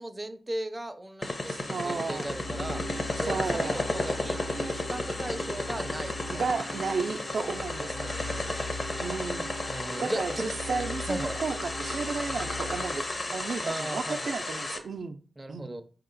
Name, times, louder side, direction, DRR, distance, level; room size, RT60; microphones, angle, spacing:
voice 1, 0.0-2.8 3.2-6.4 7.8-8.7 9.7-10.4 11.1-11.4 13.6-14.4 15.4-15.8, right 1 dB, 20° right, 0.5 m, -37 dB
sound 1, 1.2-14.8, left 2 dB, 40° left, 0.7 m, -34 dB
voice 2, 1.5-2.2 3.2-3.8 6.3-8.1 9.0-9.5 10.0-13.0 13.3-15.2 15.5-15.8, right 4 dB, 75° right, 0.4 m, -33 dB
sound 2, 2.1-13.5, left 1 dB, 85° left, 1.4 m, -39 dB
4.8 x 2.9 x 3.8 m
wide cardioid pair, 95°, 0 cm